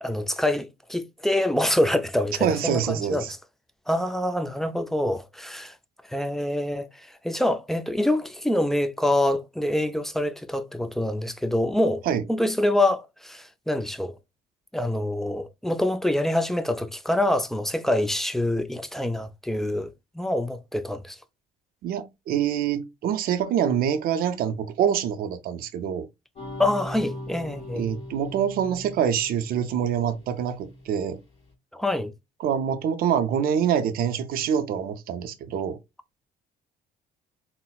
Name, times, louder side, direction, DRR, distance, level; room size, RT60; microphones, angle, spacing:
voice 1, 0.0-3.4 3.9-5.8 6.1-12.0 12.3-14.1 14.7-21.2 26.6-27.9 31.7-32.1, left 1 dB, ahead, 0.3 m, -26 dB
voice 2, 2.4-3.3 12.1-12.2 21.8-26.1 27.7-31.2 32.4-35.8, right 8 dB, 60° right, 0.5 m, -25 dB
sound 1, 26.4-31.2, left 1 dB, 35° left, 1.2 m, -40 dB
3.9 x 2.0 x 2.2 m
cardioid pair, 110°, 17 cm